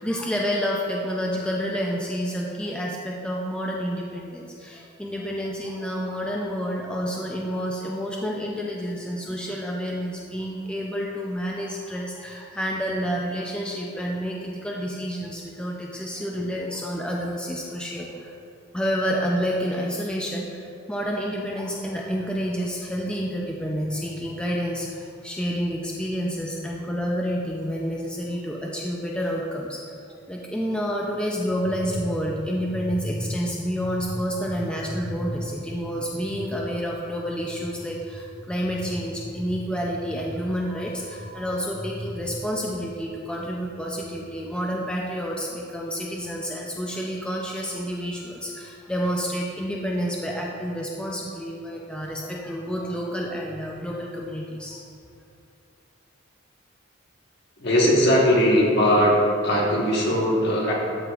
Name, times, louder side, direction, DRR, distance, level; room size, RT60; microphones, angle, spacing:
voice 1, 0.0-18.4 18.7-29.8 30.3-54.8, equal, 5° left, -3 dB, 0.4 m, -29 dB
voice 2, 57.6-59.2 59.4-60.7, equal, 55° left, -3 dB, 1.4 m, -19 dB
12.5 x 4.9 x 2.4 m, 2.6 s
head